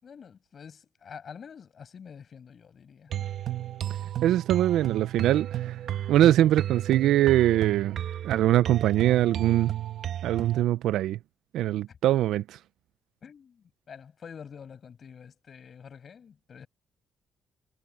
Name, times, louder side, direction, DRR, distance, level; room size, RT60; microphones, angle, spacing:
voice 1, 0.0-3.1 11.9-12.0 13.2-16.7, left 7 dB, 50° left, 7.4 m, -47 dB
sound 1, 3.1-10.6, right 12 dB, 65° right, 1.8 m, -33 dB
voice 2, 4.2-5.8 6.1-8.0 8.2-9.7 10.2-11.2 11.5-12.6, right 13 dB, 85° right, 0.4 m, -22 dB
cardioid pair, 90°, 0 cm